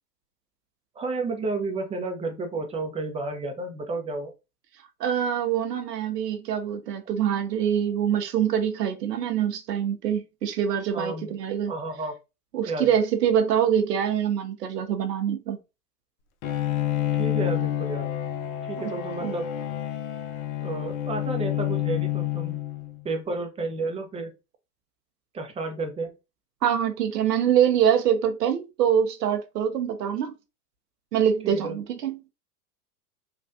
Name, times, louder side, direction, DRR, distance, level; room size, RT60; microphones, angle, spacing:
voice 1, 0.9-4.3 10.9-11.3 11.7-12.1 12.6-12.9 17.1-18.1 18.6-19.5 20.6-22.6 23.0-24.3 25.3-26.1 31.4-31.8, right 3 dB, 15° right, 0.6 m, -31 dB
voice 2, 5.0-11.7 12.5-15.6 18.8-18.9 19.2-19.3 26.6-30.3 31.1-32.2, right 9 dB, 85° right, 0.7 m, -24 dB
Bowed string instrument, 16.4-23.1, left 12 dB, 60° left, 0.6 m, -29 dB
3.3 x 2.3 x 2.6 m
hypercardioid pair, 100°, 47 cm